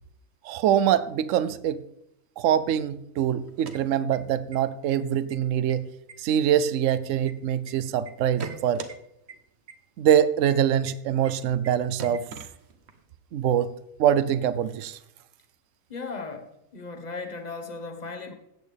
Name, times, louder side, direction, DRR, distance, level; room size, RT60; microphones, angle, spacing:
voice 1, 0.4-1.8 2.4-5.9 6.2-8.8 10.0-12.2 13.3-13.7 14.0-15.0, right 10 dB, 75° right, 15 dB, 1.0 m, -24 dB
sound 1, 3.4-4.6 4.9-5.0 5.3-5.7 6.1-7.7 8.1-8.9 9.3-9.4 9.7-9.8 10.1-10.2 10.5-10.6 10.9-11.0 11.2-11.3 11.6-11.7 12.0-13.0, right 5 dB, 55° right, 1.2 m, -40 dB
voice 2, 15.9-18.3, left 4 dB, 35° left, 6 dB, 1.3 m, -37 dB
14.5 x 8.7 x 3.4 m, 0.80 s
omnidirectional pair, 1.4 m